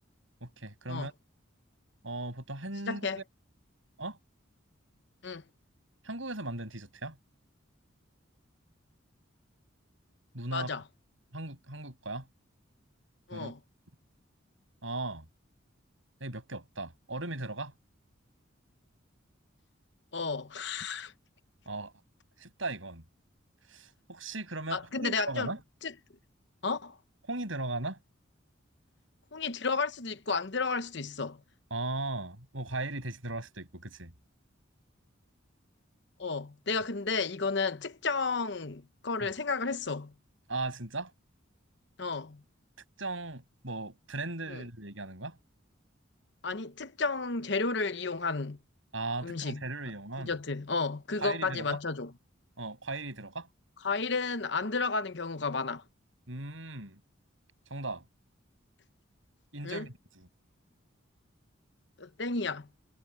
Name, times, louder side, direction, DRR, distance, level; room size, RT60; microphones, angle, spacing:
voice 1, 0.4-1.1 2.0-3.2 4.0-4.2 6.0-7.2 10.3-10.7 11.3-12.2 13.3-13.5 14.8-15.2 16.2-17.7 21.6-21.9 22.4-23.0 23.7-25.6 27.3-28.0 31.7-34.1 39.2-39.3 40.5-41.1 43.0-45.4 48.9-50.3 51.2-51.6 52.6-53.5 56.3-57.0 57.7-58.0 59.5-60.3, right 2 dB, 75° right, 6.9 m, -37 dB
voice 2, 2.9-3.2 5.2-5.4 10.5-10.8 13.3-13.6 20.1-21.1 24.7-25.5 25.8-25.9 26.6-27.0 29.3-31.4 36.2-40.1 42.0-42.4 44.5-44.6 46.4-48.6 49.2-49.6 50.2-52.1 53.8-55.8 59.6-59.9 62.0-62.7, left 4 dB, 60° left, 1.0 m, -32 dB
head